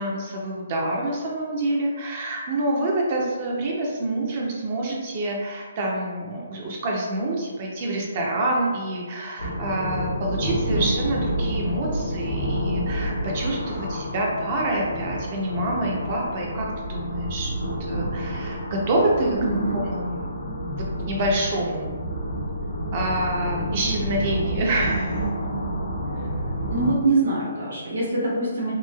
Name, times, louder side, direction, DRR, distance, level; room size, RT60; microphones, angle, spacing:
voice 1, 0.0-17.5 17.8-19.4 19.9-20.3 21.1-21.9 22.9-25.2, right 1 dB, 35° right, -1 dB, 0.5 m, -27 dB
sound 1, 9.4-26.9, equal, 85° left, 0.7 m, -29 dB
voice 2, 19.4-19.8 26.7-28.7, right 2 dB, 75° right, -6 dB, 0.9 m, -24 dB
3.0 x 2.6 x 2.2 m, 1.5 s
hypercardioid pair, 165°, 0 cm